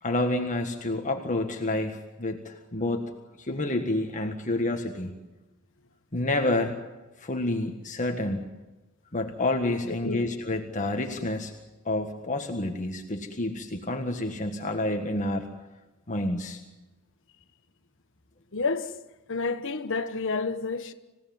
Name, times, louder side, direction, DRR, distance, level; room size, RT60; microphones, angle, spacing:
voice 1, 0.0-3.1 3.4-5.1 6.1-6.8 7.2-8.5 9.1-11.5 11.8-15.5 16.1-16.6, left 2 dB, 35° left, 1.7 m, -29 dB
voice 2, 18.5-19.0 19.3-20.9, left 4 dB, 60° left, 1.4 m, -29 dB
27.0 x 17.0 x 9.5 m
head